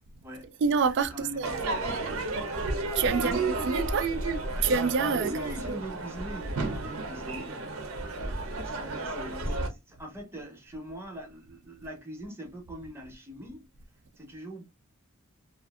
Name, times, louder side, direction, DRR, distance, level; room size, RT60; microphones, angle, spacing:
voice 1, 0.0-0.6 1.1-1.9 3.1-3.5 5.2-7.6 8.2-13.7 14.2-14.6, equal, 10° right, 0.7 m, -42 dB
voice 2, 0.6-1.5 2.9-3.4 3.6-4.1 4.6-5.3 5.7-5.8, right 5 dB, 55° right, 0.3 m, -26 dB
Crowd / Fireworks, 1.4-9.7, right 3 dB, 80° right, 0.7 m, -32 dB
2.6 x 2.5 x 2.3 m
head